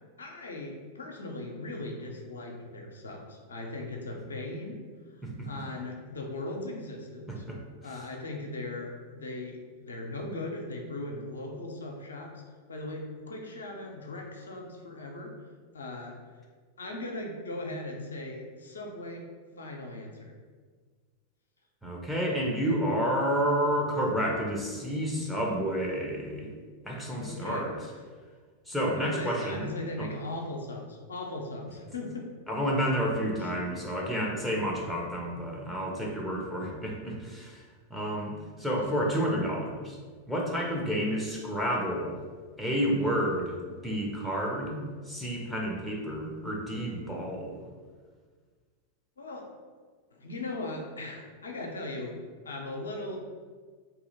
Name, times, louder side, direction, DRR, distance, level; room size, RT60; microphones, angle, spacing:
voice 1, 0.2-4.8 5.4-7.4 7.8-12.3 12.7-15.3 15.7-16.2 16.8-19.3 19.5-20.3 27.0-28.0 28.7-32.3 33.3-33.8 35.8-36.7 49.2-49.5 50.1-52.2 52.4-53.2, left 2 dB, 70° left, 1 dB, 0.6 m, -39 dB
voice 2, 21.8-26.5 26.8-27.7 28.7-30.1 32.5-37.6 37.9-40.0 40.3-42.2 42.6-43.6 43.8-44.8 45.1-47.6, equal, ahead, -2 dB, 0.7 m, -30 dB
2.9 x 2.8 x 4.0 m, 1.5 s
figure-of-eight pair, 90°, 0 cm